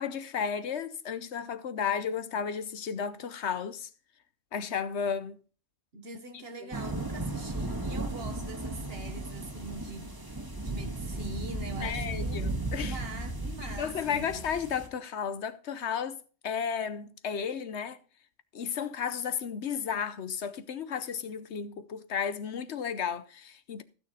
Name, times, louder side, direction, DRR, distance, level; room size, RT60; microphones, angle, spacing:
voice 1, 0.0-3.9 4.5-5.4 6.6-6.7 11.8-13.0 13.8-16.2 16.4-18.0 18.5-23.8, left 7 dB, 70° left, 1.0 m, -33 dB
voice 2, 5.9-14.6, right 2 dB, 55° right, 1.7 m, -43 dB
sound 1, 6.7-14.9, right 2 dB, 20° right, 1.7 m, -35 dB
15.5 x 6.6 x 4.1 m
omnidirectional pair, 1.2 m